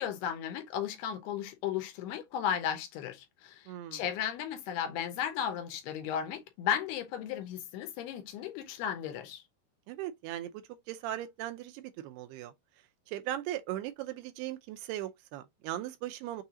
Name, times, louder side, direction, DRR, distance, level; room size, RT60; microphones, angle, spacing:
voice 1, 0.0-9.4, left 9 dB, 80° left, 2.8 m, -35 dB
voice 2, 3.7-4.0 9.9-10.5 10.9-12.5 13.1-16.4, right 13 dB, 80° right, 2.6 m, -38 dB
6.8 x 2.8 x 2.7 m
omnidirectional pair, 4.8 m